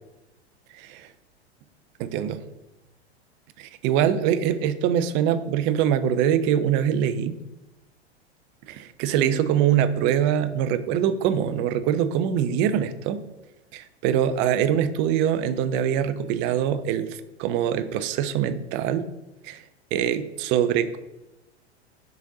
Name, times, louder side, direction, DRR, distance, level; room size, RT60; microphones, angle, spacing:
voice 1, 2.0-2.4 3.6-7.3 8.7-13.2 13.7-19.0 19.4-19.6 19.9-21.0, right 9 dB, 35° right, 12 dB, 0.5 m, -23 dB
6.2 x 4.1 x 3.9 m, 1.0 s
figure-of-eight pair, 95°, 34 cm